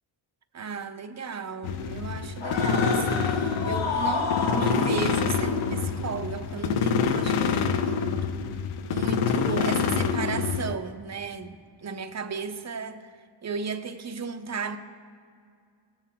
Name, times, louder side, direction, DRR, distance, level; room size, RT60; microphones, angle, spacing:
voice 1, 0.5-8.0 8.9-13.1 13.4-14.8, right 5 dB, 35° right, 6 dB, 0.7 m, -34 dB
sound 1, 1.6-10.7, left 6 dB, 85° left, 0.7 m, -26 dB
sound 2, 2.4-8.0, left 4 dB, 65° left, 1.2 m, -32 dB
18.0 x 7.3 x 2.2 m, 2.2 s
cardioid pair, 75°, 48 cm